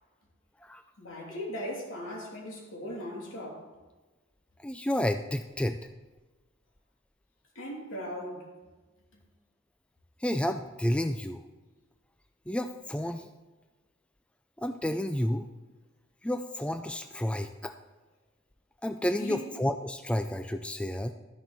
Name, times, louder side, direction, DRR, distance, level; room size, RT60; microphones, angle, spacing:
voice 1, 1.0-3.7 7.5-8.5 19.2-19.5, equal, 70° left, 3.0 m, -38 dB
voice 2, 4.6-5.8 10.2-11.4 12.5-13.3 14.6-15.5 16.2-17.7 18.8-21.1, left 1 dB, 5° left, 0.4 m, -30 dB
13.0 x 10.5 x 4.1 m
head